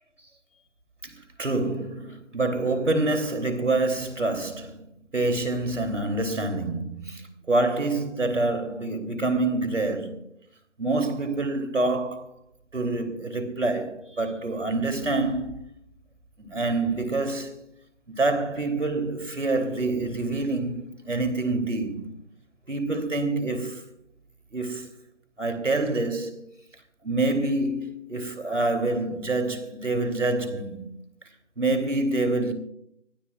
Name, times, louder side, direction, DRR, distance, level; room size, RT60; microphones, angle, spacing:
voice 1, 1.0-4.8 5.1-10.2 10.8-12.3 12.7-15.6 16.4-17.7 18.1-22.2 22.7-23.8 24.5-24.9 25.4-26.4 27.0-30.9 31.6-32.5, right 2 dB, 70° right, 3.0 m, -26 dB
25.0 x 15.5 x 2.4 m
figure-of-eight pair, 160°, 38 cm